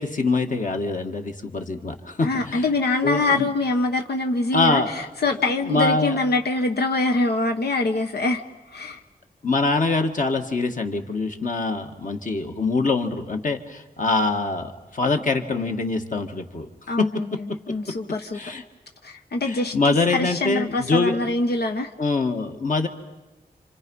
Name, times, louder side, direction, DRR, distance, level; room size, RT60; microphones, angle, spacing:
voice 1, 0.0-2.7 3.0-3.5 4.5-5.1 5.7-6.2 9.4-16.7 17.0-17.6 18.3-18.6 19.5-21.2 22.0-22.9, left 3 dB, 50° left, 4 dB, 2.0 m, -24 dB
voice 2, 2.2-8.4 8.7-9.0 16.9-18.4 19.0-21.9, left 2 dB, 90° left, 4 dB, 1.3 m, -24 dB
29.5 x 27.0 x 5.6 m, 1.1 s
wide cardioid pair, 115°, 16 cm